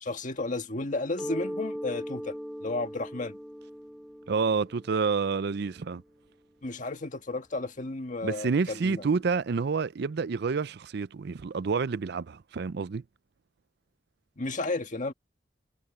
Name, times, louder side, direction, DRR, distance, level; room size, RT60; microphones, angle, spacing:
voice 1, 0.0-2.4 2.6-3.4 6.6-9.1 14.4-15.1, left 2 dB, 45° left, 1.7 m, -33 dB
Mallet percussion, 1.2-6.7, equal, ahead, 4.2 m, -40 dB
voice 2, 4.3-6.0 8.2-13.0, right 5 dB, 65° right, 0.5 m, -28 dB
head